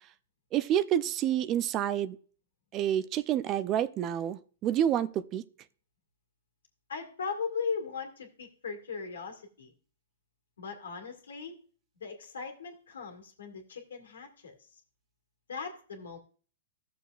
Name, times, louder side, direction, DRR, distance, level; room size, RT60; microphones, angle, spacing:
voice 1, 0.5-2.2 2.7-5.4, right 10 dB, 30° right, 15 dB, 0.4 m, -28 dB
voice 2, 6.9-9.7 10.6-11.5 12.0-14.8 15.5-16.2, left 5 dB, 85° left, 4 dB, 1.9 m, -38 dB
13.5 x 6.8 x 2.4 m, 0.41 s
hypercardioid pair, 125°, 0 cm